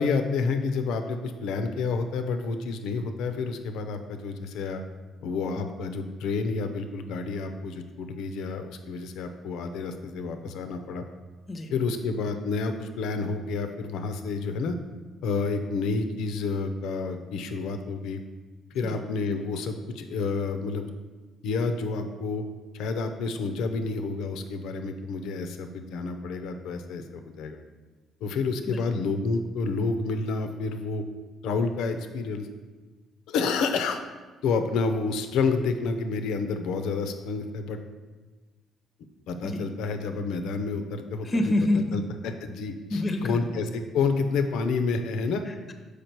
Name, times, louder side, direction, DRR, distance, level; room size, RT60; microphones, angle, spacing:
voice 1, 0.0-4.8 5.2-11.0 11.7-14.8 15.2-18.2 18.7-20.9 21.4-22.4 22.7-27.6 28.2-31.0 31.4-32.5 33.3-34.0 34.4-37.8 39.3-41.3 41.9-42.0 42.4-45.4, left 4 dB, 85° left, 7 dB, 0.6 m, -29 dB
voice 2, 41.2-42.0 42.9-43.4 45.5-45.7, left 1 dB, 30° left, 6 dB, 0.7 m, -27 dB
6.7 x 4.9 x 4.5 m, 1.3 s
cardioid pair, 100°, 0 cm